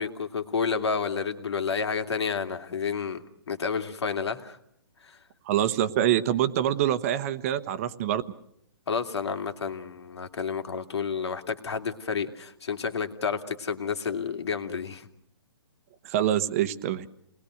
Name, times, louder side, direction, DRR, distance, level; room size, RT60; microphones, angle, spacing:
voice 1, 0.0-4.6 5.0-5.2 8.9-15.1, left 5 dB, 80° left, 7 dB, 2.7 m, -30 dB
voice 2, 5.5-8.2 16.0-17.1, right 11 dB, 35° right, 13 dB, 1.1 m, -25 dB
29.0 x 20.0 x 6.5 m, 0.73 s
hypercardioid pair, 160°, 14 cm